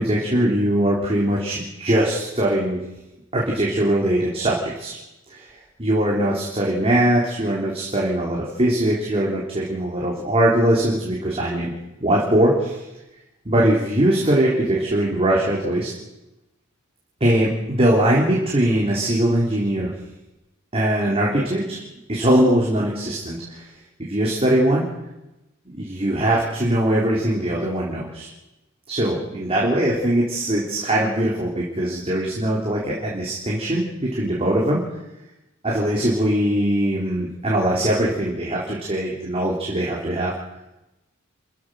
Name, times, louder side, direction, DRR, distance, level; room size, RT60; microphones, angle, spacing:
voice 1, 0.0-2.8 3.3-5.0 5.3-5.5 5.8-11.7 12.0-12.8 13.5-15.9 17.2-19.9 20.7-21.8 22.1-23.6 24.1-24.8 25.7-28.3 28.9-34.8 35.6-40.3, right 1 dB, 30° right, -4 dB, 3.7 m, -21 dB
29.0 x 15.0 x 6.3 m, 0.98 s
head